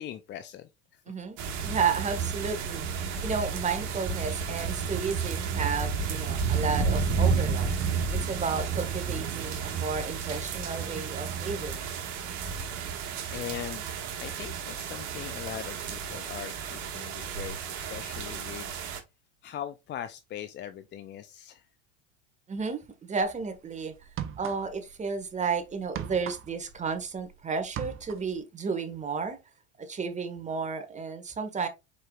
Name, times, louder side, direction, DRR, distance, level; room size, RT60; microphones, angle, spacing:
voice 1, 0.0-1.0 13.3-13.8 14.2-18.7 19.4-21.6, left 11 dB, 30° left, 0.5 m, -40 dB
voice 2, 1.1-7.7 8.1-11.9 22.5-23.9 24.4-29.4 29.8-31.7, right 5 dB, 20° right, 1.3 m, -32 dB
sound 1, 1.4-19.0, right 6 dB, 55° right, 1.6 m, -32 dB
sound 2, 23.2-23.4 24.0-24.9 25.2-27.3 27.6-28.4, right 9 dB, 35° right, 0.9 m, -38 dB
4.9 x 4.6 x 2.4 m
hypercardioid pair, 90°, 35 cm